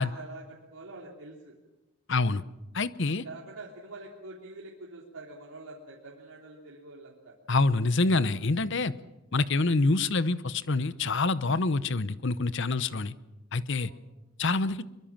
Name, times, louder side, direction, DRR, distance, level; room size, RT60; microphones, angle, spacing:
voice 1, 0.0-1.5 3.0-7.3 13.8-14.0, right 2 dB, 75° right, -3 dB, 3.4 m, -45 dB
voice 2, 2.1-2.4 2.7-3.2 7.5-8.9 9.3-13.1 13.5-13.9 14.4-14.8, left 3 dB, 55° left, 15 dB, 0.8 m, -26 dB
24.0 x 23.5 x 7.4 m, 1.1 s
head